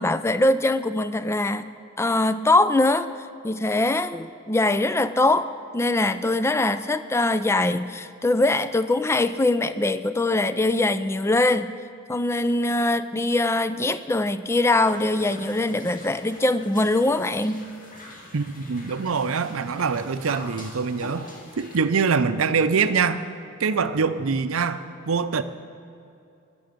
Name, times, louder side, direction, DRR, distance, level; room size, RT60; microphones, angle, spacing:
voice 1, 0.0-3.1 3.4-11.7 12.1-17.7, left 2 dB, 15° left, 13 dB, 0.3 m, -22 dB
sound 1, 14.7-21.8, left 1 dB, 40° left, 2.1 m, -44 dB
voice 2, 18.3-21.3 21.6-23.2 23.6-25.4, right 5 dB, 85° right, 11 dB, 0.6 m, -24 dB
20.5 x 7.0 x 5.2 m, 2.6 s
head